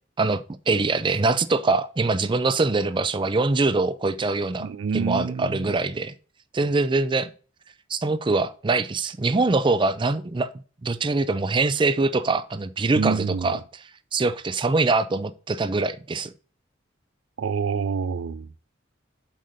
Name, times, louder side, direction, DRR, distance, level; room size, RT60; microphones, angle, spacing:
voice 1, 0.2-6.1 6.5-7.3 7.9-10.5 10.8-13.6 14.1-16.3, right 3 dB, 25° right, 0.4 m, -23 dB
voice 2, 4.6-5.7 12.9-13.6 17.4-18.5, right 5 dB, 90° right, 0.4 m, -27 dB
7.6 x 5.1 x 4.0 m
head